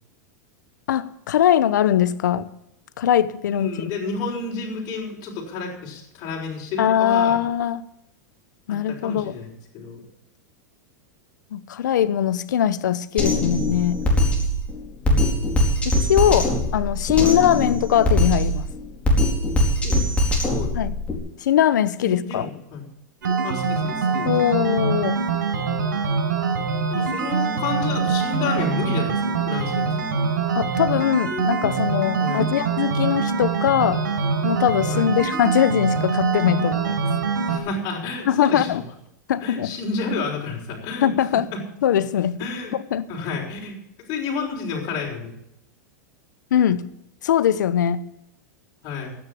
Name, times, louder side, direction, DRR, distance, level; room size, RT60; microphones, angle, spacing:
voice 1, 0.9-2.5 3.0-3.9 6.8-7.8 8.7-9.3 11.5-14.0 15.8-18.7 20.8-20.9 21.4-22.5 24.2-25.2 30.5-34.0 34.4-37.0 38.2-38.8 39.3-39.8 41.0-41.5 41.8-42.4 42.9-43.1 46.5-46.9 47.2-48.0, left 10 dB, 85° left, 0.9 m, -21 dB
voice 2, 3.5-7.4 8.7-10.0 15.0-15.5 16.7-16.8 17.2-17.4 19.8-20.0 20.5-20.7 22.0-22.9 23.4-24.3 26.9-30.2 32.2-32.4 34.9-35.1 37.5-38.7 39.4-41.1 41.5-41.6 42.4-42.7 43.1-45.4 48.8-49.1, left 4 dB, 40° left, 5.6 m, -30 dB
Drum kit, 13.2-21.2, left 1 dB, 10° left, 4.5 m, -22 dB
sound 1, 23.2-37.6, right 5 dB, 85° right, 4.6 m, -24 dB
12.5 x 9.7 x 8.6 m
hypercardioid pair, 125°, 10 cm